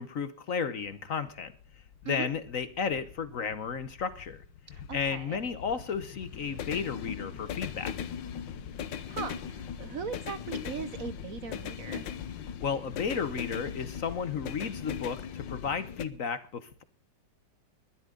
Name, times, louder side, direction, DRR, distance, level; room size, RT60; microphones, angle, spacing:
voice 1, 0.0-1.5 2.0-4.4 4.9-7.9 12.6-16.8, left 6 dB, 50° left, 13 dB, 1.2 m, -33 dB
sound 1, 0.9-16.1, left 8 dB, 80° left, 1.7 m, -40 dB
voice 2, 4.7-5.4 9.1-12.1, right 7 dB, 55° right, 13 dB, 1.1 m, -39 dB
20.5 x 12.0 x 3.8 m, 0.39 s
omnidirectional pair, 2.0 m